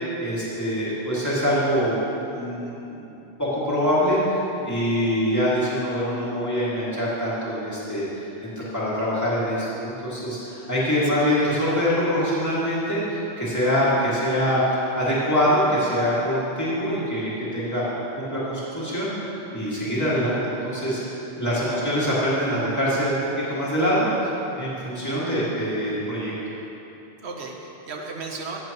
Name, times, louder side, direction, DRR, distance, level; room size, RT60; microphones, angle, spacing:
voice 1, 0.2-3.1 3.4-14.6 15.0-17.8 18.1-19.1 19.5-24.3 24.6-26.3, equal, 15° left, -9 dB, 2.3 m, -24 dB
voice 2, 21.6-21.9 27.2-28.6, right 4 dB, 85° right, 1 dB, 1.3 m, -35 dB
15.0 x 7.7 x 3.1 m, 3.0 s
omnidirectional pair, 1.1 m